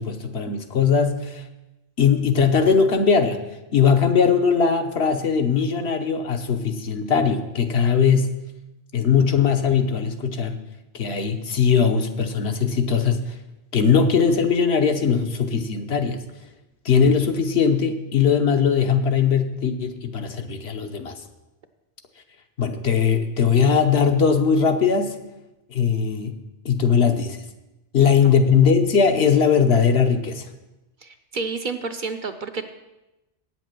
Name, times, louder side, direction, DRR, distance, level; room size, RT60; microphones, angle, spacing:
voice 1, 0.0-1.4 2.0-3.4 3.7-8.4 8.9-10.6 10.9-13.3 13.7-16.2 16.8-21.1 22.6-25.2 25.7-26.4 26.6-27.4 27.9-30.5, left 6 dB, 70° left, 5 dB, 1.1 m, -20 dB
voice 2, 31.0-32.7, right 4 dB, 55° right, 6 dB, 0.7 m, -30 dB
8.9 x 7.7 x 6.0 m, 1.0 s
omnidirectional pair, 1.2 m